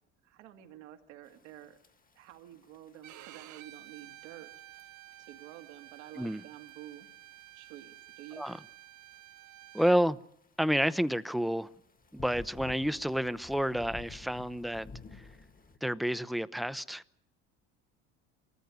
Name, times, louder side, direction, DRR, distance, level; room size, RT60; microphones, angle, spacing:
voice 1, 0.2-1.8 2.2-4.5 4.8-4.9 5.2-7.1 7.5-8.5, right 12 dB, 80° right, 2.2 m, -50 dB
sound 1, 1.2-15.8, left 3 dB, 25° left, 1.6 m, -54 dB
Bowed string instrument, 3.0-10.0, right 15 dB, 55° right, 1.0 m, -52 dB
voice 2, 9.7-10.2 10.6-11.7 12.1-15.3 15.8-17.0, equal, ahead, 0.7 m, -30 dB
23.5 x 14.5 x 9.4 m
hypercardioid pair, 70°, 36 cm